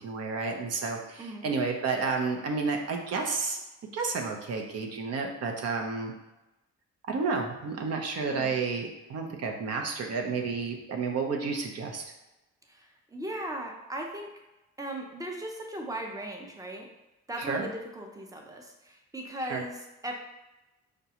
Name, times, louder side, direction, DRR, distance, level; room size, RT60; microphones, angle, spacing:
voice 1, 0.0-3.6 3.9-6.1 7.1-12.0 17.4-17.7 19.5-19.6, right 4 dB, 55° right, 2 dB, 0.7 m, -31 dB
voice 2, 12.7-14.4 14.8-16.9 17.3-20.1, right 1 dB, 10° right, 2 dB, 0.6 m, -38 dB
5.0 x 2.2 x 2.8 m, 1.0 s
cardioid pair, 90°, 30 cm